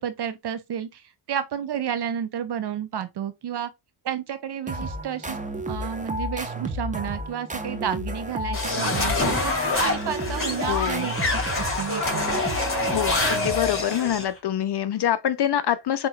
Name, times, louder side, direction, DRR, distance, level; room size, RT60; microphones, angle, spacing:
voice 1, 0.0-3.7 4.0-5.4 5.7-12.3, right 9 dB, 55° right, 0.7 m, -31 dB
sound 1, 4.7-14.2, right 1 dB, 15° right, 0.9 m, -32 dB
sound 2, 8.5-14.3, left 2 dB, 25° left, 2.8 m, -26 dB
voice 2, 10.7-11.1 12.9-16.1, left 10 dB, 55° left, 0.6 m, -25 dB
5.5 x 3.0 x 2.3 m
cardioid pair, 70°, 50 cm